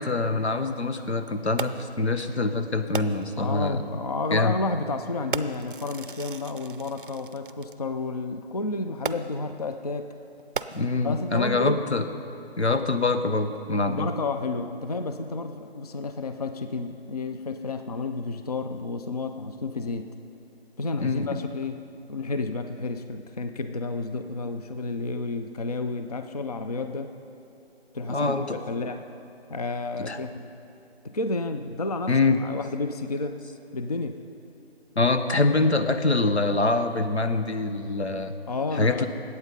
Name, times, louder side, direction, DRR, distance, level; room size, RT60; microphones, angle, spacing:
voice 1, 0.0-3.8 4.3-4.5 10.7-12.1 12.6-14.1 21.0-21.4 28.1-28.6 30.0-30.2 32.1-32.4 35.0-38.3 38.7-39.1, left 3 dB, 85° left, 8 dB, 1.1 m, -24 dB
Fireworks, 1.6-2.0 2.9-3.4 4.3-4.5 5.3-7.8 9.0-9.5 10.4-11.2 11.9-12.0, right 5 dB, 55° right, 0.5 m, -36 dB
voice 2, 3.4-10.1 11.0-11.8 13.9-20.1 20.8-21.8 22.1-27.1 27.9-29.1 29.5-30.5 31.0-32.1 32.4-33.4 33.7-34.2 38.5-39.1, left 3 dB, 35° left, 8 dB, 0.5 m, -31 dB
20.0 x 8.3 x 5.2 m, 2.9 s
figure-of-eight pair, 150°, 32 cm